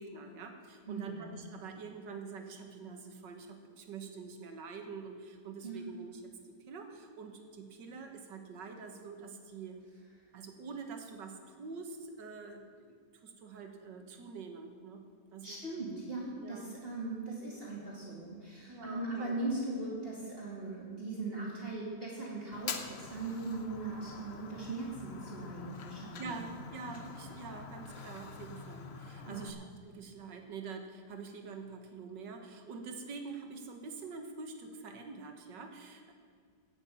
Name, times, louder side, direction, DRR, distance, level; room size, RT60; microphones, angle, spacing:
voice 1, 0.0-9.8 10.3-15.0 15.3-15.6 16.4-16.7 17.7-17.9 18.7-19.5 26.2-36.1, right 4 dB, 85° right, 5 dB, 2.0 m, -46 dB
voice 2, 0.9-1.3 5.6-6.0 15.4-26.8 29.3-29.6, right 2 dB, 35° right, -5 dB, 2.4 m, -39 dB
Fire, 22.5-29.5, left 5 dB, 45° left, 0.9 m, -45 dB
17.0 x 6.8 x 7.0 m, 2.1 s
omnidirectional pair, 1.9 m